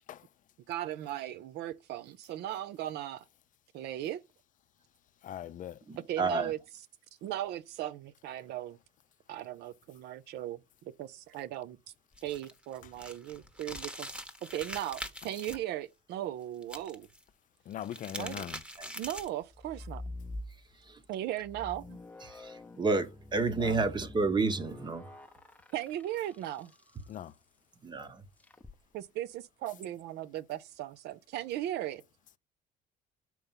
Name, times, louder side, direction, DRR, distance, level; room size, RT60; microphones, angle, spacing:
voice 1, 0.7-3.2 3.7-4.2 6.1-6.9 7.2-8.8 9.3-10.6 11.0-11.8 12.2-14.1 14.5-17.1 18.2-18.5 19.0-20.0 21.1-22.0 25.7-26.7 28.9-32.0, right 13 dB, 80° right, 0.6 m, -37 dB
voice 2, 5.2-5.7 17.7-18.6 23.6-23.8 27.1-27.3, left 10 dB, 50° left, 0.5 m, -40 dB
voice 3, 6.2-6.5 18.8-18.9 22.8-25.0 27.8-28.2, right 3 dB, 25° right, 1.1 m, -29 dB
sound 1, 12.1-15.6 16.6-17.2 17.7-19.4, equal, 5° right, 1.1 m, -43 dB
sound 2, 19.5-20.9 21.4-26.9 28.4-28.8, left 2 dB, 10° left, 0.7 m, -46 dB
6.6 x 4.6 x 5.6 m
cardioid pair, 110°, 17 cm